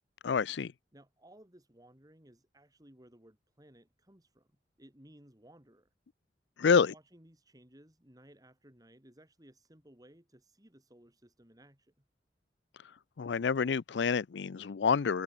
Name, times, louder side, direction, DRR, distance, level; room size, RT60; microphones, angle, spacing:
voice 1, 0.2-0.7 6.6-6.9 13.2-15.2, left 6 dB, 80° left, 0.5 m, -28 dB
voice 2, 0.9-4.5 4.8-5.9 6.6-12.0, right 1 dB, 20° right, 3.4 m, -59 dB
open air
head